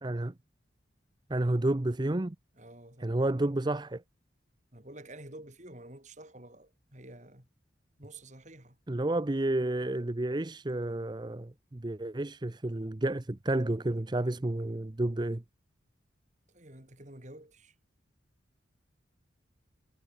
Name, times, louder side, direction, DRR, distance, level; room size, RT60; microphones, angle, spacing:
voice 1, 0.0-0.3 1.3-2.4 3.0-4.0 8.9-15.4, right 1 dB, 25° right, 0.6 m, -30 dB
voice 2, 2.5-3.2 4.7-7.5 8.0-8.8 16.5-17.8, right 1 dB, 40° right, 5.4 m, -50 dB
head